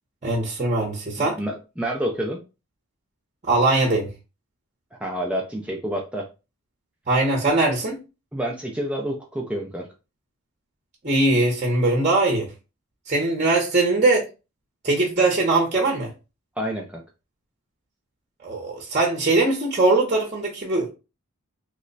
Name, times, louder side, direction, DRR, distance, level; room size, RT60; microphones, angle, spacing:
voice 1, 0.2-1.4 3.4-4.1 7.1-8.0 11.0-12.5 13.1-14.2 14.8-16.1 18.4-20.9, right 2 dB, 30° right, 0.7 m, -21 dB
voice 2, 1.2-2.4 5.0-6.3 8.3-9.9 16.6-17.0, right 1 dB, 5° right, 0.4 m, -28 dB
3.0 x 2.1 x 3.8 m
head